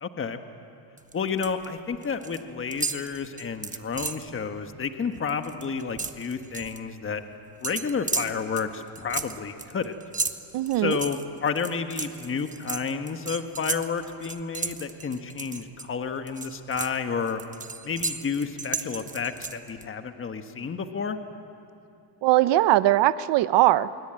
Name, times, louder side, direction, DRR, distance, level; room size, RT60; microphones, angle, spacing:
voice 1, 0.0-0.4 1.1-7.2 7.6-10.0 10.8-17.4 17.8-21.2, left 6 dB, 25° left, 7 dB, 1.5 m, -31 dB
sound 1, 1.0-1.7 1.9-2.4 2.7-4.3 4.7-4.9 5.2-6.8 7.6-15.9 16.3-19.9, right 4 dB, 15° right, 1.2 m, -34 dB
voice 2, 10.5-11.0 22.2-23.9, right 15 dB, 60° right, 15 dB, 1.0 m, -20 dB
26.5 x 23.0 x 9.0 m, 2.7 s
cardioid pair, 105°, 46 cm